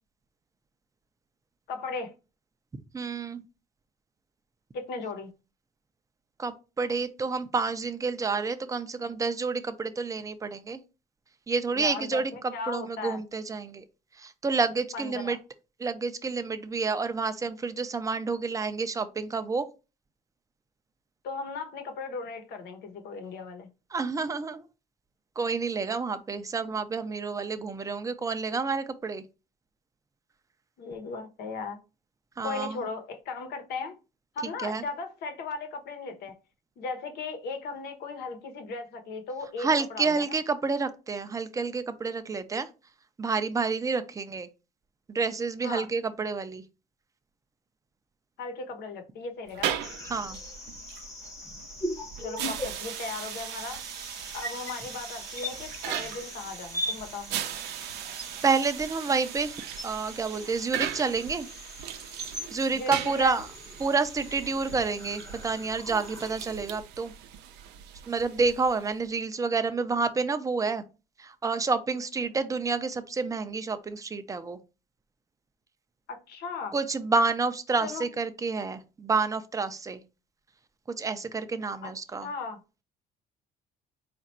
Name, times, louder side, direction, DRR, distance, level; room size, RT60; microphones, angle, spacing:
voice 1, 1.7-2.1 4.7-5.3 11.7-13.2 14.9-15.4 21.2-23.7 30.8-31.8 32.4-33.9 34.3-36.3 36.8-40.4 45.6-45.9 48.4-49.8 52.2-53.8 54.3-57.3 62.7-63.4 76.1-76.7 77.8-78.1 81.8-81.9 82.2-82.6, left 4 dB, 75° left, 1.0 m, -37 dB
voice 2, 2.9-3.4 6.4-10.8 11.5-13.8 14.2-15.4 15.8-19.6 23.9-24.6 25.4-29.2 32.4-32.8 34.6-34.8 39.6-42.7 43.2-44.5 45.1-46.6 50.1-50.4 58.4-59.6 59.8-61.5 62.5-63.5 63.8-67.1 68.1-70.8 71.2-74.6 76.7-80.0 81.0-82.3, right 4 dB, 20° right, 0.5 m, -29 dB
sound 1, 49.5-69.1, right 10 dB, 85° right, 0.6 m, -38 dB
sound 2, 49.8-66.8, left 1 dB, 20° left, 1.0 m, -41 dB
4.3 x 2.5 x 4.2 m
cardioid pair, 110°, 17 cm